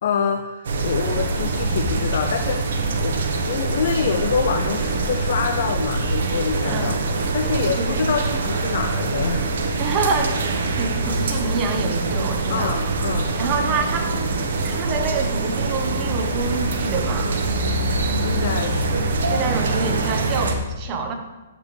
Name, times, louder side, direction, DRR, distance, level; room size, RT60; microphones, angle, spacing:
voice 1, 0.0-7.0 7.3-9.5 12.5-13.4 18.2-19.1, left 6 dB, 60° left, 6 dB, 0.6 m, -26 dB
sound 1, 0.6-20.6, right 3 dB, 75° right, 1.4 m, -24 dB
voice 2, 7.4-8.0 9.8-12.8 13.4-14.4 14.6-17.8 19.3-21.1, right 3 dB, 25° right, 3 dB, 1.4 m, -27 dB
12.0 x 7.5 x 3.5 m, 1.1 s
hypercardioid pair, 150°, 0 cm